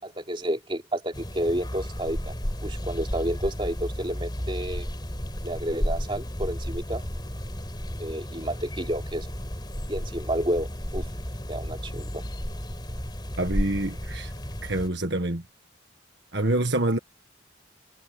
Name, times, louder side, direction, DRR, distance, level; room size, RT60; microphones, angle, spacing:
voice 1, 0.0-2.3 2.6-4.9 5.4-7.1 8.0-9.3 9.9-10.7 10.9-11.0 11.5-12.2, right 1 dB, 25° right, 3.5 m, -30 dB
sound 1, 1.1-14.9, equal, 20° left, 4.7 m, -33 dB
voice 2, 13.4-14.3 14.6-15.4 16.3-17.0, right 1 dB, 60° right, 1.7 m, -26 dB
head